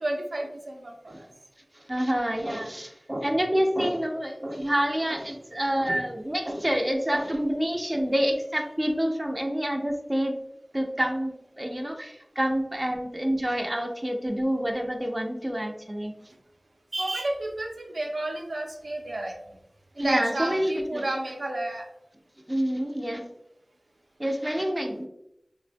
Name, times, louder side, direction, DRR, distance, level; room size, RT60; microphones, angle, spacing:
voice 1, 0.0-1.1 16.9-19.3 20.0-21.9, right 1 dB, 90° right, 1 dB, 0.4 m, -31 dB
voice 2, 1.8-10.4 10.7-16.1 20.0-21.0 22.5-23.2 24.2-25.1, equal, 25° right, 2 dB, 0.4 m, -27 dB
3.1 x 2.1 x 2.5 m, 0.80 s
wide cardioid pair, 45°, 0 cm